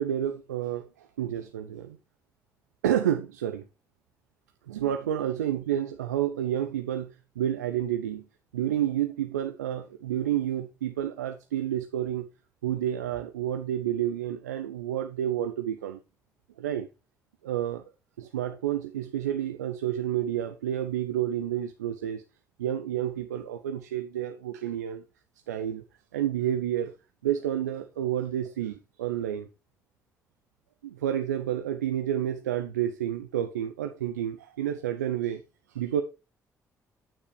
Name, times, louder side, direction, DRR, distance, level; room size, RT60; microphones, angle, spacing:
voice 1, 0.0-2.0 2.8-3.7 4.7-8.2 8.5-12.3 12.6-16.0 16.6-16.9 17.4-17.8 18.2-22.2 22.6-25.0 25.5-25.8 26.1-26.9 27.2-29.5 30.8-35.4 35.7-36.0, right 11 dB, 85° right, 0.5 m, -30 dB
8.9 x 6.7 x 3.2 m
figure-of-eight pair, 40°, 9 cm